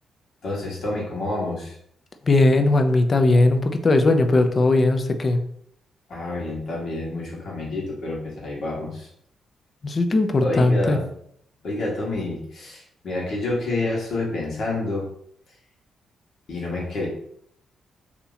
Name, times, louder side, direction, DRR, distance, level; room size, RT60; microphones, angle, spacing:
voice 1, 0.4-1.7 6.1-9.1 10.4-11.1 11.6-15.1 16.5-17.1, left 2 dB, 65° left, -3 dB, 1.4 m, -28 dB
voice 2, 2.3-5.4 9.8-11.0, left 2 dB, 45° left, 7 dB, 0.5 m, -18 dB
2.8 x 2.7 x 4.0 m, 0.69 s
supercardioid pair, 55°, 0 cm